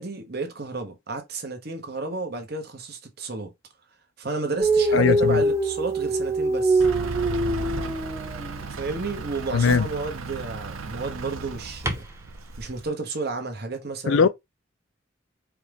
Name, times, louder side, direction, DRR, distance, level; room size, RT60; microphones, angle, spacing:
voice 1, 0.0-3.5 4.2-6.9 8.7-12.1 12.6-14.3, right 3 dB, 50° right, 1.1 m, -32 dB
Dog, 4.6-8.6 9.6-9.8 11.8-12.0, right 2 dB, 15° right, 0.5 m, -23 dB
voice 2, 4.9-5.4 9.5-9.9 14.1-14.3, left 6 dB, 65° left, 0.4 m, -20 dB
Truck / Idling, 6.8-12.9, right 4 dB, 90° right, 0.6 m, -35 dB
4.7 x 2.3 x 3.4 m
head